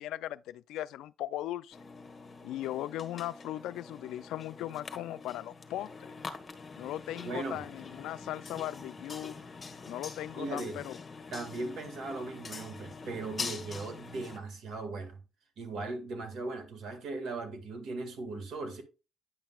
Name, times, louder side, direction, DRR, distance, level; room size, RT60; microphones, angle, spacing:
voice 1, 0.0-1.8 2.4-5.9 6.8-9.3 9.9-11.0, left 13 dB, 90° left, 0.3 m, -38 dB
sound 1, 1.7-14.4, left 4 dB, 30° left, 1.1 m, -45 dB
voice 2, 7.2-7.7 10.4-10.9 11.3-15.2 15.6-18.8, right 3 dB, 75° right, 1.8 m, -38 dB
9.2 x 5.7 x 2.3 m
cardioid pair, 90°, 0 cm